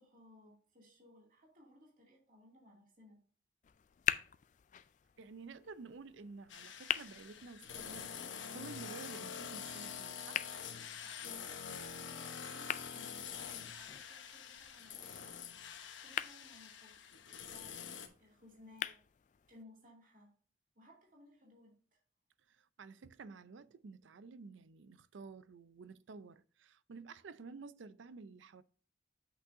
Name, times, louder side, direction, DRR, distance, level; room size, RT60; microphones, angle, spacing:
voice 1, 0.0-3.2 11.0-11.3 12.0-15.4 15.8-17.0 17.3-19.0 19.5-20.3 20.7-21.8, left 1 dB, 45° right, 2.6 m, -61 dB
sound 1, 3.6-19.6, left 10 dB, 40° left, 0.3 m, -45 dB
voice 2, 5.2-10.5 22.5-28.6, right 4 dB, 85° right, 0.5 m, -52 dB
sound 2, 6.5-18.1, left 7 dB, 85° left, 1.0 m, -46 dB
8.1 x 6.2 x 2.6 m
head